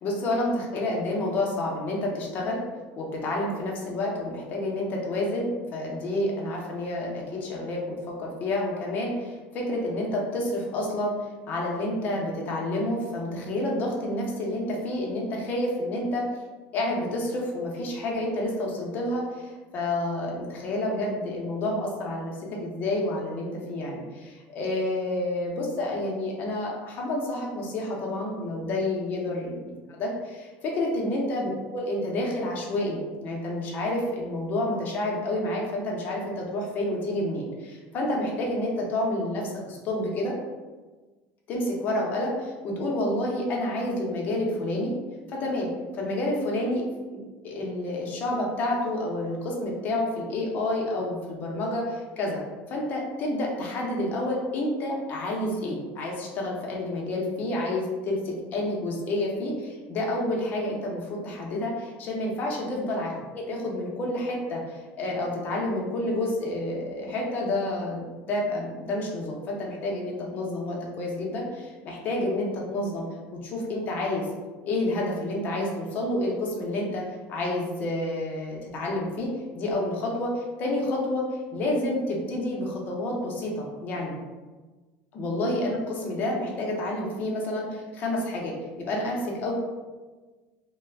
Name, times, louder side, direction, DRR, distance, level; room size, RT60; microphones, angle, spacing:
voice 1, 0.0-2.6 3.0-11.1 11.5-16.3 16.7-40.4 41.5-44.9 45.3-46.8 47.1-52.4 52.7-73.1 73.4-74.3 74.7-84.1 85.1-89.5, left 1 dB, 35° left, -2 dB, 0.5 m, -29 dB
2.3 x 2.0 x 3.2 m, 1.3 s
cardioid pair, 175°, 5 cm